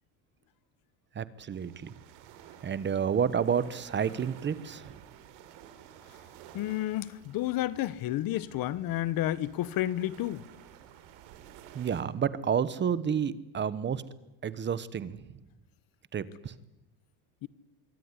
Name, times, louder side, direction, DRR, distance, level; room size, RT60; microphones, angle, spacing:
voice 1, 1.1-1.9 2.6-5.0 11.7-14.0 14.4-15.2 16.1-16.5, right 7 dB, 25° right, 1.1 m, -30 dB
sound 1, 1.5-12.0, right 10 dB, 75° right, 4.3 m, -53 dB
voice 2, 6.5-10.4 17.4-17.5, left 14 dB, 50° left, 1.2 m, -31 dB
25.5 x 23.5 x 9.8 m
cardioid pair, 155°, 44 cm